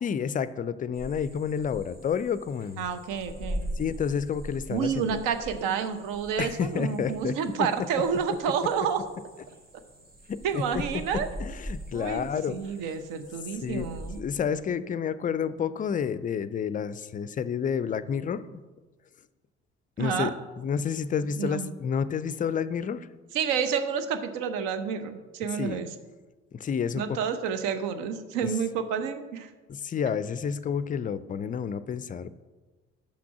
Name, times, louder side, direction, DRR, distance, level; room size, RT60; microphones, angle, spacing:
voice 1, 0.0-2.8 3.8-5.2 6.4-7.4 10.3-10.6 11.1-12.6 13.6-13.9 14.2-18.6 20.0-20.3 20.6-23.1 25.6-25.8 26.5-27.2 28.4-28.5 29.7-32.3, left 7 dB, 25° left, 15 dB, 0.4 m, -30 dB
sound 1, 0.9-14.2, equal, 25° right, 1.6 m, -42 dB
voice 2, 2.8-3.7 4.7-9.0 10.4-11.3 11.9-14.2 20.0-20.3 21.4-21.7 23.3-25.9 27.0-29.5, right 7 dB, 65° right, 9 dB, 0.8 m, -29 dB
6.1 x 6.0 x 5.8 m, 1.3 s
figure-of-eight pair, 50°, 34 cm